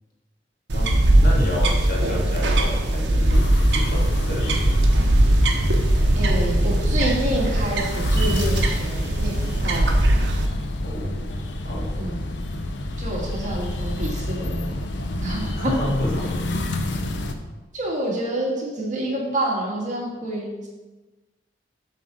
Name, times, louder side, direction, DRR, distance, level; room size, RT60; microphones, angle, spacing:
sound 1, 0.7-10.5, right 1 dB, 70° right, 0.9 m, -20 dB
voice 1, 1.2-4.7 10.8-11.3 11.6-12.1 15.6-16.5, left 1 dB, 55° left, -3 dB, 2.0 m, -30 dB
sound 2, 3.3-17.3, left 1 dB, 70° left, 0.6 m, -29 dB
voice 2, 6.1-10.3 12.0-12.2 13.0-14.8 15.2-15.7 17.7-20.7, right 1 dB, 40° right, -3 dB, 1.7 m, -28 dB
7.5 x 3.8 x 6.2 m, 1.2 s
head